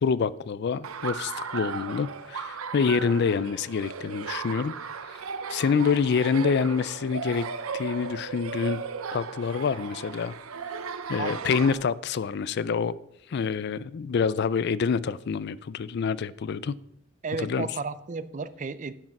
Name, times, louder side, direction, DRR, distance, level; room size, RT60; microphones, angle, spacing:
voice 1, 0.0-4.7 5.5-7.5 7.7-8.8 9.1-10.3 11.1-12.9 13.3-16.7 17.4-17.7, left 6 dB, 55° left, 0.4 m, -26 dB
Laughter, 0.8-11.7, right 5 dB, 90° right, 0.7 m, -36 dB
voice 2, 11.2-11.5 17.2-18.9, right 4 dB, 35° right, 0.4 m, -33 dB
10.5 x 6.4 x 5.8 m
head